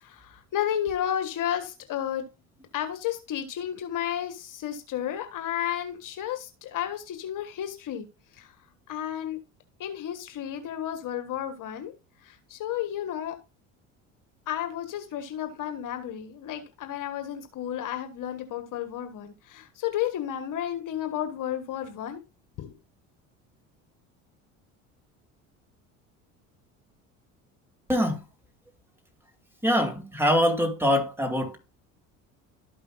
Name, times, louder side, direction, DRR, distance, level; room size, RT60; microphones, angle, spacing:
voice 1, 0.0-2.2 2.7-8.1 8.4-8.5 8.9-9.4 9.8-11.9 12.2-13.4 14.5-22.2 22.6-22.7, left 10 dB, 55° left, 1.4 m, -32 dB
voice 2, 29.6-31.6, equal, 5° right, 2.3 m, -23 dB
12.5 x 5.5 x 2.4 m
hypercardioid pair, 70°, 39 cm